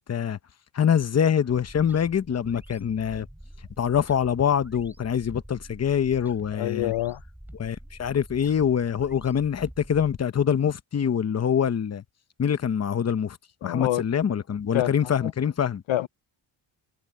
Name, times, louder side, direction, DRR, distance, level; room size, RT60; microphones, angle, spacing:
voice 1, 0.7-3.3 3.8-6.9 7.6-12.0 12.4-13.4 13.6-15.8, left 8 dB, 30° left, 0.8 m, -24 dB
sound 1, 1.5-10.2, right 1 dB, 5° right, 3.2 m, -47 dB
voice 2, 6.5-7.2 13.6-14.0 14.7-14.9 15.2-15.3 15.9-16.1, left 14 dB, 75° left, 0.7 m, -26 dB
wide cardioid pair, 145°, 48 cm